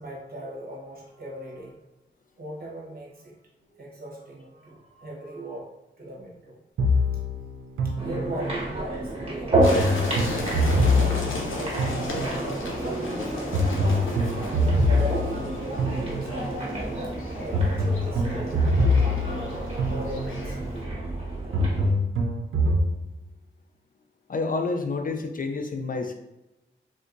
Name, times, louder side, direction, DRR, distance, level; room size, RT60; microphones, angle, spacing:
voice 1, 0.0-1.9 2.4-3.4 3.7-5.7 6.0-6.6 7.8-16.6 17.4-20.6, right 1 dB, 50° right, -3 dB, 1.1 m, -40 dB
sound 1, 6.8-8.7 9.5-12.6 13.5-16.6 17.5-20.6 21.5-22.9, left 1 dB, 85° right, 0.5 m, -25 dB
sound 2, 8.0-21.9, right 2 dB, 30° right, 1.3 m, -30 dB
sound 3, 9.6-20.8, left 2 dB, 80° left, 0.7 m, -35 dB
voice 2, 24.3-26.1, left 3 dB, 45° left, 5 dB, 0.4 m, -29 dB
3.6 x 2.6 x 2.5 m, 0.94 s
cardioid pair, 70°, 20 cm